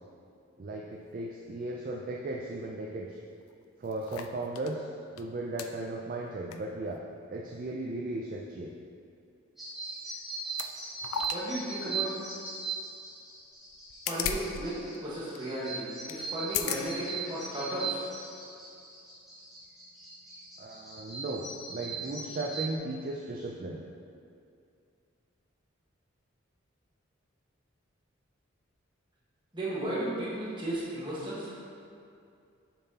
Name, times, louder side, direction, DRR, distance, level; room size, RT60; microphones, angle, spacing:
voice 1, 0.6-3.2 3.8-4.9 5.1-7.0 7.3-8.7 20.6-23.8, right 2 dB, 40° right, -1 dB, 0.3 m, -36 dB
sound 1, 3.1-3.2 3.4-4.7 5.2-5.3 5.6-5.7 6.3-6.6 6.9-7.0 9.7-9.9 10.5-10.7 11.0-11.4 11.8-11.9 13.7-14.6 14.9-15.0 15.3-15.5 16.1-16.2 16.5-16.8 17.5-17.6, left 8 dB, 85° left, 0.4 m, -35 dB
sound 2, 9.6-22.7, right 4 dB, ahead, 1.4 m, -39 dB
voice 2, 11.3-12.1 14.1-18.0 29.5-31.5, right 1 dB, 25° right, -8 dB, 1.3 m, -34 dB
6.9 x 5.7 x 2.8 m, 2.5 s
head